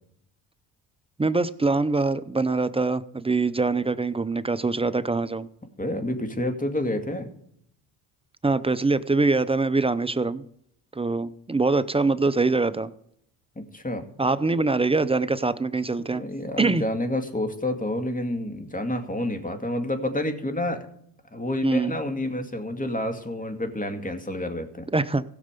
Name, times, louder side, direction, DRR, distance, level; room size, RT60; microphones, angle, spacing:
voice 1, 1.2-5.5 8.4-10.4 10.9-12.9 14.2-16.2 16.6-16.8 21.6-22.0 24.9-25.2, right 3 dB, 15° right, 0.6 m, -23 dB
voice 2, 5.8-7.3 13.6-14.1 16.0-20.9 21.3-24.9, left 1 dB, 20° left, 2.2 m, -29 dB
16.0 x 6.7 x 5.2 m
supercardioid pair, 70°, 44 cm